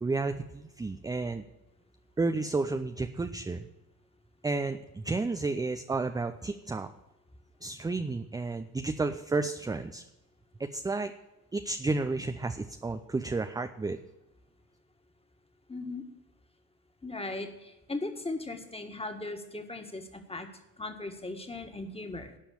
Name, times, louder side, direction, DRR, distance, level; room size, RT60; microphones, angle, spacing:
voice 1, 0.0-1.4 2.2-3.7 4.4-6.9 7.6-10.0 10.6-11.1 11.5-14.0, right 3 dB, 10° right, 8 dB, 0.5 m, -31 dB
voice 2, 15.7-16.0 17.0-20.5 20.8-22.4, left 2 dB, 10° left, 6 dB, 1.8 m, -38 dB
11.5 x 5.5 x 8.7 m, 0.97 s
hypercardioid pair, 70°, 46 cm